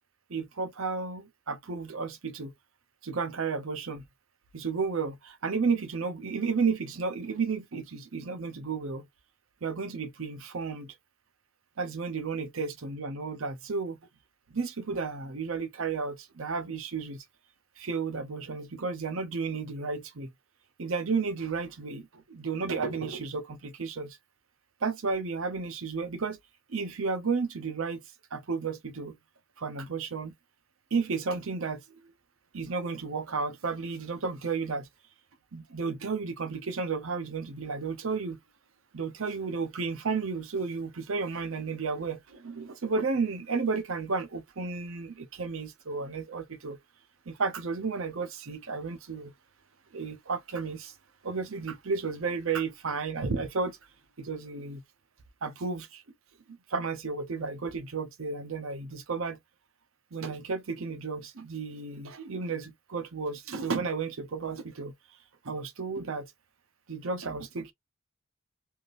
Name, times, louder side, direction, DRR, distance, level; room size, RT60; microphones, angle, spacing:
voice 1, 0.3-2.5 3.0-4.0 4.5-9.0 9.6-11.0 11.8-14.0 14.5-17.2 17.8-20.3 20.8-24.2 24.8-26.4 26.7-28.0 28.3-29.2 29.6-30.3 30.9-31.8 32.5-34.9 35.5-38.4 38.9-46.8 47.3-49.3 49.9-50.9 51.2-53.8 54.2-54.8 55.4-56.0 56.7-59.4 60.1-64.9 65.4-66.3 66.9-67.7, right 4 dB, 65° right, 0.7 m, -32 dB
3.5 x 2.5 x 2.5 m
head